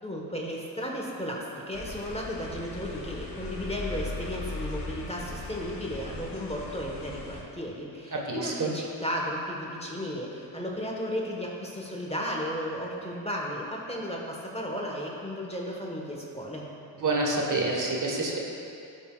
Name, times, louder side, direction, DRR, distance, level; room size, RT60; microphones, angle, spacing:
voice 1, 0.0-16.7, equal, 15° left, -2 dB, 1.4 m, -34 dB
sound 1, 1.7-7.4, left 2 dB, 55° left, 1.7 m, -38 dB
voice 2, 8.1-8.7 17.0-18.4, right 2 dB, 40° right, -1 dB, 1.5 m, -27 dB
12.5 x 6.2 x 2.5 m, 2.7 s
supercardioid pair, 50°, 48 cm